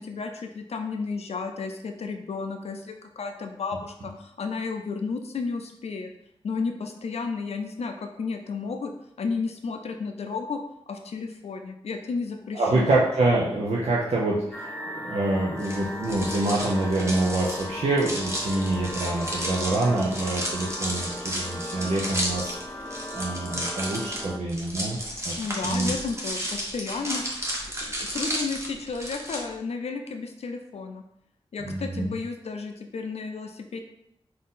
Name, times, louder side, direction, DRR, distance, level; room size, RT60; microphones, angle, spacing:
voice 1, 0.0-6.1 6.4-8.9 9.2-10.6 10.9-13.0 25.4-27.2 27.6-31.0 31.5-33.8, left 4 dB, 80° left, 5 dB, 0.4 m, -32 dB
voice 2, 12.5-14.7 15.0-22.5 23.1-25.0 25.2-25.3 25.6-25.9 31.7-32.2, right 2 dB, 80° right, -5 dB, 0.6 m, -26 dB
sound 1, 14.5-24.4, equal, 15° left, 0.4 m, -37 dB
sound 2, 15.6-29.4, equal, 25° right, 1.1 m, -33 dB
4.0 x 2.7 x 3.6 m, 0.76 s
cardioid pair, 50°, 11 cm